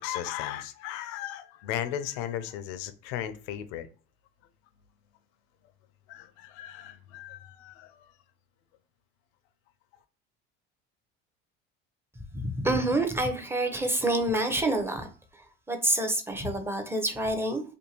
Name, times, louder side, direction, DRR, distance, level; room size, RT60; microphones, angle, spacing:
voice 1, 0.0-3.9 6.1-8.1, left 11 dB, 75° left, 0.5 m, -36 dB
voice 2, 12.3-15.1 15.3-17.6, right 1 dB, 10° right, 0.6 m, -27 dB
2.6 x 2.6 x 2.8 m
supercardioid pair, 85°, 30 cm